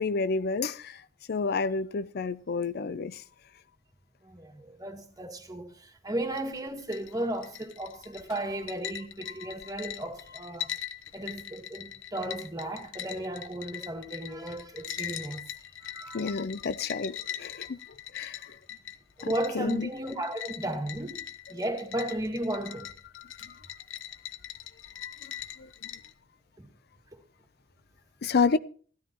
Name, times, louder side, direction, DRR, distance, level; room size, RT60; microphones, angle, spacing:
voice 1, 0.0-3.2 9.4-9.5 10.6-10.7 16.1-17.8 18.1-18.6 19.5-19.9 23.2-23.6 25.6-25.7 28.2-28.6, left 4 dB, 55° left, 0.5 m, -30 dB
voice 2, 4.2-10.7 11.1-15.5 15.8-16.4 19.2-22.9 26.6-26.7, right 1 dB, 20° right, 1.8 m, -35 dB
sound 1, 6.2-26.1, left 11 dB, 75° left, 0.9 m, -42 dB
17.5 x 13.0 x 3.0 m
head